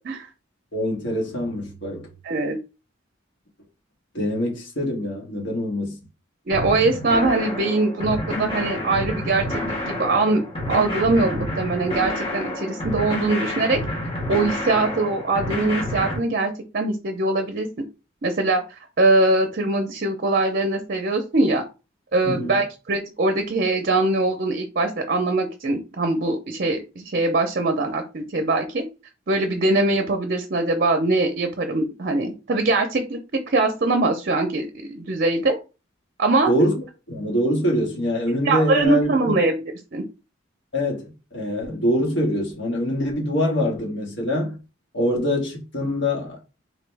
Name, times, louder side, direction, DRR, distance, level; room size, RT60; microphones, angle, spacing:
voice 1, 0.7-2.1 4.1-5.9 22.2-22.6 36.5-36.7 37.1-39.3 40.7-44.6 44.9-46.4, equal, 65° left, 1.7 m, -24 dB
voice 2, 2.2-2.6 6.5-9.6 9.9-10.4 10.7-13.8 14.3-17.7 18.2-18.6 19.0-21.6 22.1-28.8 29.3-33.2 33.5-35.6 36.2-36.5 38.4-39.6 39.9-40.0, right 2 dB, 50° right, 0.6 m, -22 dB
sound 1, 6.5-16.2, left 1 dB, 30° left, 1.5 m, -29 dB
4.0 x 3.0 x 3.3 m
head